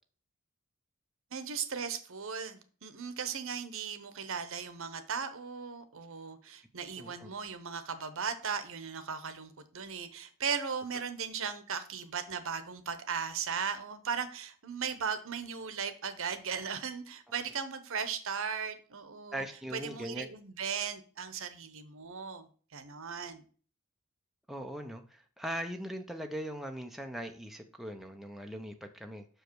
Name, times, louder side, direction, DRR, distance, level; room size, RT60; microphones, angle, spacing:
voice 1, 1.3-19.4 19.7-22.5 22.7-23.4, right 6 dB, 65° right, 11 dB, 0.9 m, -37 dB
voice 2, 7.0-7.3 19.3-20.3 24.5-29.3, equal, ahead, 3 dB, 0.6 m, -40 dB
6.3 x 5.0 x 4.6 m, 0.40 s
head